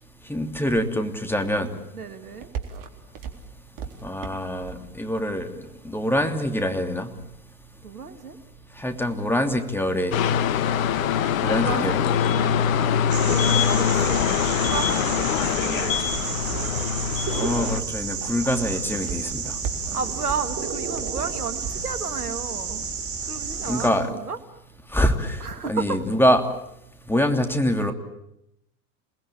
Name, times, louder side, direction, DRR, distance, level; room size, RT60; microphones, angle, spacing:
voice 1, 0.3-1.7 4.0-5.5 5.8-7.1 8.8-10.2 11.4-12.1 17.3-19.5 23.7-24.1 24.9-25.4 25.7-26.4 27.1-27.9, equal, 5° left, 6 dB, 3.0 m, -24 dB
voice 2, 1.9-2.5 7.8-8.4 11.6-12.0 12.3-12.6 13.2-16.7 19.9-22.9 23.2-24.4 25.4-26.0, right 5 dB, 85° right, 10 dB, 2.0 m, -33 dB
sound 1, 2.3-22.1, right 7 dB, 55° right, 3.9 m, -43 dB
Train Station Ambience, 10.1-17.8, left 8 dB, 65° left, 1.4 m, -23 dB
sound 2, 13.1-23.9, right 5 dB, 30° right, 5.6 m, -31 dB
28.5 x 20.0 x 8.9 m, 0.80 s
figure-of-eight pair, 85°, 44 cm